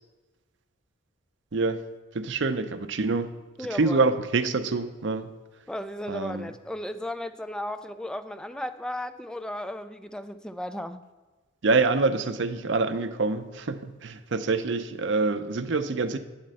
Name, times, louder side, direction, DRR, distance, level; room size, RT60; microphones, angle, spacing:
voice 1, 2.1-3.3 3.8-5.3 6.1-6.4 11.6-16.2, right 3 dB, 65° right, 9 dB, 0.6 m, -26 dB
voice 2, 3.6-4.1 5.7-11.0, left 1 dB, 5° left, 10 dB, 0.3 m, -35 dB
9.2 x 4.4 x 7.5 m, 1.2 s
head